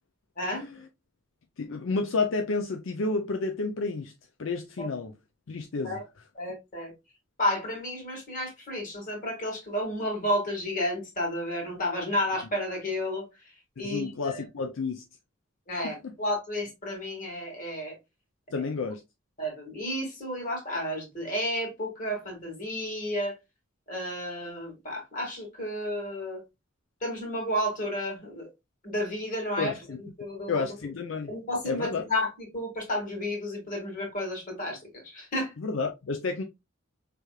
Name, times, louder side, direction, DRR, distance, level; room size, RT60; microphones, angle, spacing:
voice 1, 1.6-4.1 4.4-5.1 5.5-6.0 13.8-15.0 15.8-16.1 18.5-19.0 29.6-30.0 30.5-31.3 31.7-32.0 35.6-36.4, left 4 dB, 75° left, 0.5 m, -30 dB
voice 2, 6.3-6.9 7.4-13.3 13.8-14.4 15.7-18.0 19.4-23.4 23.9-26.4 27.0-28.5 28.8-29.7 30.0-30.7 31.3-35.5, left 1 dB, 45° left, 2.1 m, -32 dB
4.7 x 3.4 x 2.3 m
head